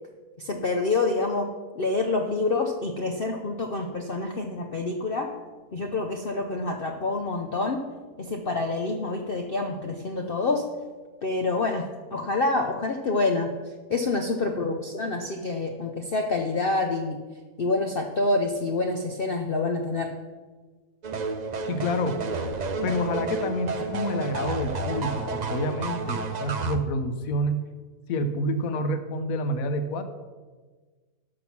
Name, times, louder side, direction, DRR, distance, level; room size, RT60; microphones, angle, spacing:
voice 1, 0.4-1.5 1.8-5.3 5.7-7.8 8.2-10.6 11.2-11.8 12.1-13.5 13.9-17.2 17.6-20.1, left 3 dB, 50° left, 3 dB, 0.7 m, -27 dB
sound 1, 21.0-26.8, right 4 dB, 50° right, 0.5 m, -31 dB
voice 2, 21.7-22.2 22.8-27.6 28.1-30.0, left 1 dB, 65° left, 9 dB, 1.3 m, -28 dB
11.5 x 6.0 x 5.8 m, 1.4 s
omnidirectional pair, 1.7 m